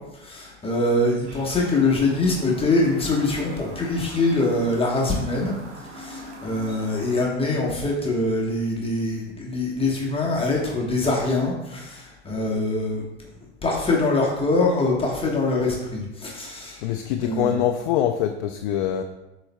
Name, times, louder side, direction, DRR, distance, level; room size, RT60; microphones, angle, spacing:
voice 1, 0.1-5.5 5.9-13.1 13.6-16.9 17.2-17.6, left 2 dB, 15° left, -3 dB, 1.2 m, -24 dB
Chirp tweet, 1.3-7.2, right 1 dB, 80° right, 1.1 m, -41 dB
voice 2, 16.8-19.0, left 10 dB, 50° left, 5 dB, 0.5 m, -24 dB
10.5 x 4.1 x 2.2 m, 0.95 s
figure-of-eight pair, 80°, 34 cm